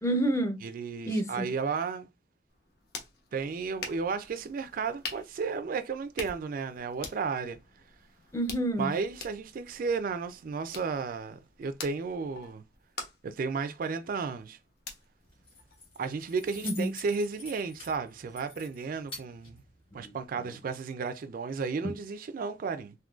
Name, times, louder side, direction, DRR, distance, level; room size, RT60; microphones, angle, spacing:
voice 1, 0.0-0.6 1.1-1.5 8.3-8.9 16.6-16.9 19.9-20.1, right 1 dB, 15° left, 0.6 m, -28 dB
voice 2, 0.6-2.1 3.3-7.6 8.8-12.6 13.2-14.6 16.0-19.6 19.9-22.9, right 5 dB, 50° right, 0.3 m, -33 dB
sound 1, 2.5-16.2, left 4 dB, 60° left, 0.9 m, -46 dB
Keys jangling, 15.2-20.3, left 3 dB, 30° left, 1.7 m, -48 dB
3.7 x 2.6 x 2.4 m
head